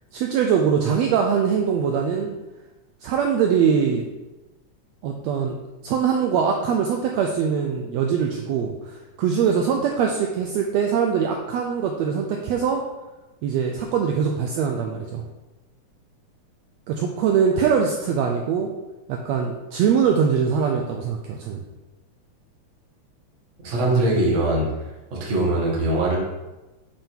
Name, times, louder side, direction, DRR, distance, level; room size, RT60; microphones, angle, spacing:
voice 1, 0.1-2.3 3.0-4.1 5.0-5.6 5.8-12.8 13.4-15.2 16.9-18.7 19.1-21.6, right 7 dB, 85° right, 2 dB, 1.5 m, -22 dB
voice 2, 23.6-24.7 25.1-26.2, right 2 dB, 40° right, -4 dB, 1.0 m, -21 dB
7.6 x 3.6 x 4.4 m, 1.1 s
omnidirectional pair, 3.5 m